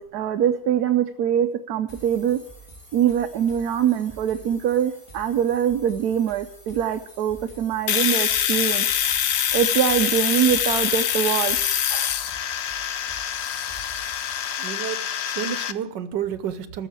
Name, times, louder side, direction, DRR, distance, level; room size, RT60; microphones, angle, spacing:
voice 1, 0.0-2.4 2.9-8.9 9.5-11.6 11.9-12.1, right 9 dB, 70° right, 8 dB, 1.1 m, -23 dB
sound 1, 1.9-14.7, right 2 dB, 15° left, 2.8 m, -47 dB
Domestic sounds home sounds, 7.9-15.7, left 9 dB, 75° left, 0.6 m, -24 dB
voice 2, 14.6-16.9, right 9 dB, 90° right, 12 dB, 1.5 m, -30 dB
14.0 x 6.5 x 9.9 m, 0.74 s
omnidirectional pair, 1.9 m